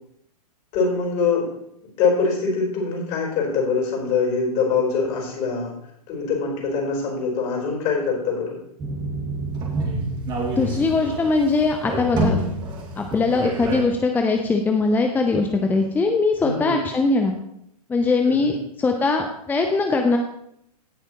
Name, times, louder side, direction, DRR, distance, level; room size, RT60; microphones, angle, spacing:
voice 1, 0.7-1.5 2.0-5.7 6.1-8.6 16.4-16.8 18.3-18.6, left 4 dB, 35° left, -1 dB, 4.2 m, -23 dB
sound 1, 8.8-13.8, right 2 dB, 20° right, 2.4 m, -28 dB
voice 2, 10.5-12.4 13.0-17.4 17.9-20.2, left 3 dB, 10° left, 4 dB, 0.7 m, -21 dB
17.5 x 6.6 x 3.0 m, 0.74 s
figure-of-eight pair, 110°, 20 cm